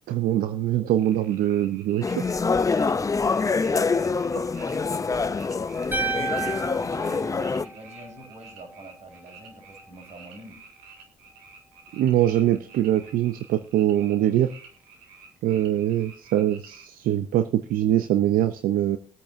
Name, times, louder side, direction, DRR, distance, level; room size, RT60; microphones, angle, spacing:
voice 1, 0.1-2.2 11.9-14.5 15.4-19.0, right 12 dB, 70° right, 12 dB, 0.7 m, -23 dB
sound 1, 1.0-16.9, right 5 dB, 90° right, 2.1 m, -50 dB
sound 2, 2.0-7.6, left 4 dB, 20° left, 0.6 m, -25 dB
voice 2, 4.2-5.0 5.8-10.7 15.5-15.9, equal, 50° right, 3 dB, 6.6 m, -45 dB
sound 3, 5.9-8.2, right 4 dB, 15° right, 2.5 m, -31 dB
22.0 x 8.7 x 2.7 m, 0.41 s
supercardioid pair, 75°, 15 cm